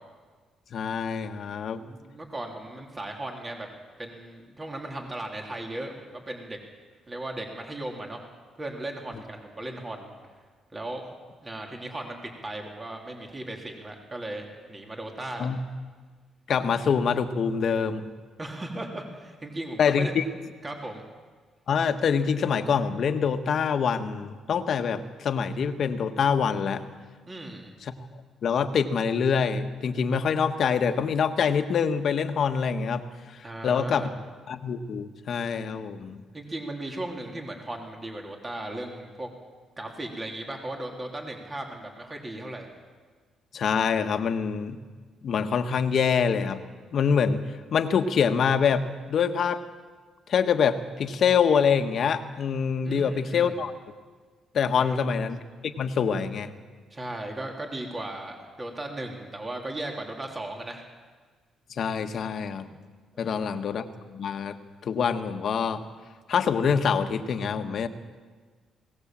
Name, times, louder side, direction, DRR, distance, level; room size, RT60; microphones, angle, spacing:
voice 1, 0.7-1.8 15.4-15.6 16.5-18.1 19.8-20.2 21.7-26.8 27.8-27.9 28.4-33.0 33.3-34.1 34.5-36.2 43.5-44.8 45.2-46.6 46.9-47.4 47.7-49.6 50.3-53.7 54.5-55.4 55.8-56.5 61.8-62.7 63.2-63.9 64.1-64.6 64.8-65.8 66.3-67.9, left 6 dB, 60° left, 7 dB, 1.4 m, -25 dB
voice 2, 1.6-3.7 4.0-6.6 7.1-8.2 8.6-10.1 10.7-11.0 11.4-15.5 18.4-20.1 20.6-21.0 27.3-27.7 33.4-34.2 36.3-39.3 39.8-42.7 52.8-53.5 54.8-55.1 56.9-60.8 63.1-63.6, right 1 dB, 25° right, 1 dB, 3.3 m, -37 dB
21.5 x 18.0 x 7.6 m, 1.5 s
cardioid pair, 90°, 0 cm